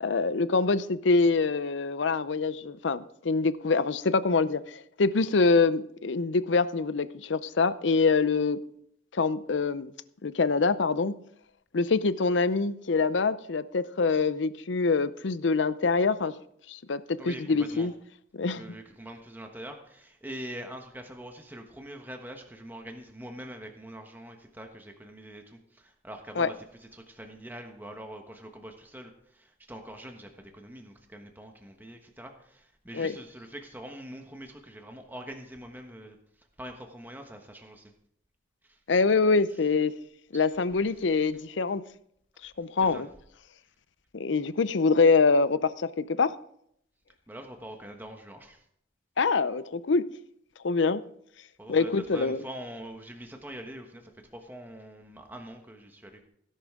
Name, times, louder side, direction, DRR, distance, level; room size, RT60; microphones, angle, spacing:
voice 1, 0.0-8.6 9.1-9.9 10.2-11.2 11.7-16.3 16.7-17.9 18.3-18.6 26.4-26.5 32.9-33.1 38.9-39.9 40.3-41.8 42.4-43.1 44.1-46.3 49.2-50.0 50.6-51.0 51.7-52.4, left 4 dB, 80° left, 0.6 m, -25 dB
voice 2, 17.2-17.9 18.5-37.9 38.6-38.8 39.5-39.6 40.3-40.4 41.0-41.1 42.8-43.0 47.3-48.7 51.6-56.3, right 1 dB, 10° right, 1.2 m, -44 dB
16.5 x 11.0 x 3.7 m
head